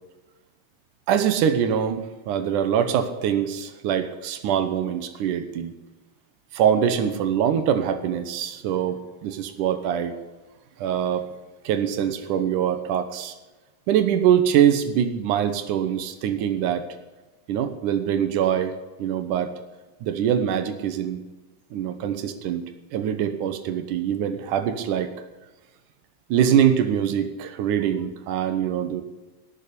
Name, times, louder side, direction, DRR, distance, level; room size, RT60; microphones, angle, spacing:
voice 1, 1.1-5.7 6.5-10.1 10.8-11.2 11.6-13.4 13.9-16.8 17.5-18.7 19.0-19.5 20.0-21.2 21.7-22.6 22.9-25.1 26.3-29.0, right 9 dB, 85° right, 9 dB, 2.6 m, -23 dB
18.0 x 6.9 x 10.0 m, 1.2 s
omnidirectional pair, 3.5 m